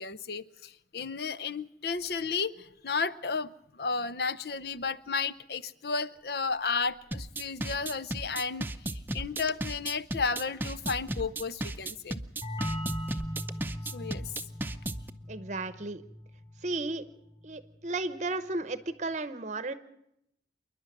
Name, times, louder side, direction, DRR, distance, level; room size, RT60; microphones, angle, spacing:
voice 1, 0.0-12.2 13.9-14.3, left 4 dB, 60° left, 0.7 m, -33 dB
sound 1, 7.1-15.1, right 1 dB, 10° right, 0.7 m, -35 dB
sound 2, 12.4-17.9, equal, 20° left, 3.5 m, -39 dB
voice 2, 15.3-16.0 16.6-17.0 17.4-19.7, right 2 dB, 40° right, 0.8 m, -34 dB
27.5 x 11.0 x 9.1 m
head